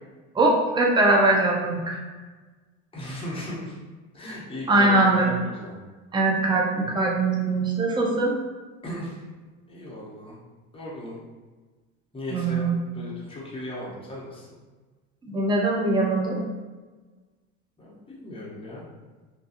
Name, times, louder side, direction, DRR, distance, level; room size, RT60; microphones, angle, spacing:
voice 1, 0.3-2.0 4.7-5.3 6.1-8.4 12.3-12.8 15.3-16.4, right 2 dB, 10° right, -1 dB, 0.5 m, -21 dB
voice 2, 2.9-3.7 4.1-5.8 8.8-9.2 9.7-10.3 10.7-11.2 12.1-12.6 12.9-14.5 17.8-18.8, left 1 dB, 15° left, -6 dB, 0.9 m, -36 dB
2.5 x 2.3 x 2.7 m, 1.3 s
hypercardioid pair, 85°, 39 cm